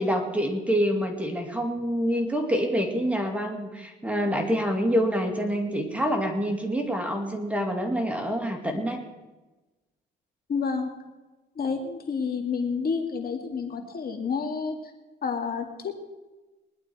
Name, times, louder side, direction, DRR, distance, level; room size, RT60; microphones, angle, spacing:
voice 1, 0.0-9.0, equal, 5° right, 3 dB, 2.6 m, -26 dB
voice 2, 10.5-10.9 11.6-14.9 15.2-16.0, left 5 dB, 50° left, 4 dB, 2.2 m, -29 dB
20.5 x 11.5 x 4.8 m, 1.1 s
cardioid pair, 90°, 20 cm